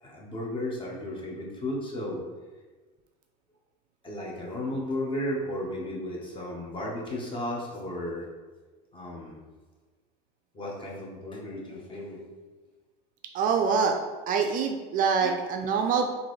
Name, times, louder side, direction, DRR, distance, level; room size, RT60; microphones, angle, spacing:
voice 1, 0.0-2.2 4.0-8.3 8.9-9.4 10.5-12.2 15.2-15.3, left 1 dB, 25° left, -2 dB, 1.0 m, -34 dB
voice 2, 13.3-14.0 14.3-16.1, right 6 dB, 45° right, 4 dB, 0.4 m, -25 dB
3.8 x 2.6 x 3.1 m, 1.3 s
supercardioid pair, 105°, 20 cm